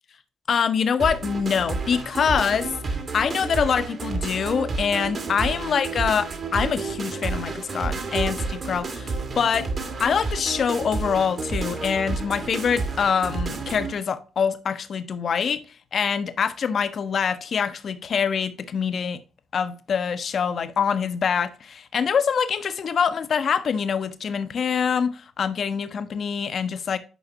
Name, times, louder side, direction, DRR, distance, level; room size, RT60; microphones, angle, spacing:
voice 1, 0.5-2.7 3.1-9.7 10.0-15.6 15.9-19.2 19.5-27.0, left 6 dB, 50° left, 0.7 m, -25 dB
sound 1, 1.0-13.9, right 3 dB, 45° right, 1.7 m, -30 dB
10.0 x 5.7 x 2.8 m
figure-of-eight pair, 45°, 0 cm